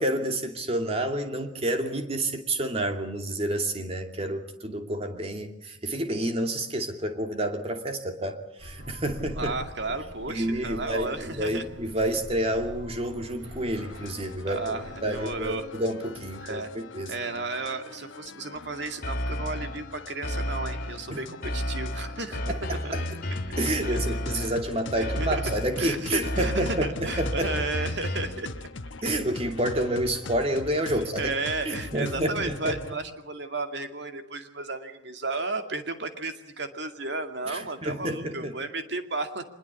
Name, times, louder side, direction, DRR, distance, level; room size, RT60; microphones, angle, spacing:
voice 1, 0.0-9.5 10.3-14.6 15.0-17.1 21.1-21.2 22.5-22.6 22.9-23.0 23.6-27.5 29.0-31.3 31.6-32.8 37.5-38.5, right 1 dB, 30° right, 5 dB, 2.7 m, -29 dB
sound 1, 8.6-15.5, equal, 85° right, 7.1 m, -44 dB
voice 2, 9.4-11.6 14.5-15.7 16.4-16.7 17.1-22.4 22.7-22.9 23.9-24.0 25.0-25.4 25.8-28.7 30.9-39.4, right 3 dB, 60° right, 7 dB, 2.4 m, -33 dB
sound 2, 13.8-33.0, left 3 dB, 80° left, 1.1 m, -42 dB
sound 3, 19.0-19.8 20.2-21.0 21.4-24.6 25.0-25.8 26.2-28.4, left 1 dB, 50° left, 3.0 m, -32 dB
24.5 x 21.5 x 8.4 m, 0.75 s
head